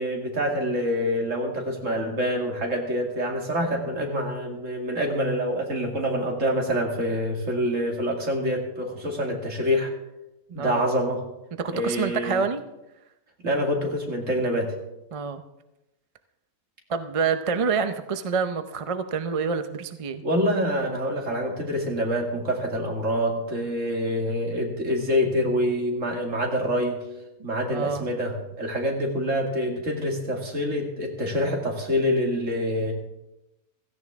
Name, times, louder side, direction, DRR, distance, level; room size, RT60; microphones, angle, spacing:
voice 1, 0.0-9.9 10.5-11.2 11.7-12.4 13.4-14.7 20.2-27.0 27.4-32.9, equal, 60° right, 1 dB, 2.6 m, -26 dB
voice 2, 10.5-10.8 11.6-12.6 15.1-15.4 16.9-20.2 27.7-28.1, right 5 dB, 40° right, 9 dB, 0.5 m, -27 dB
16.5 x 14.5 x 3.6 m, 0.93 s
omnidirectional pair, 1.5 m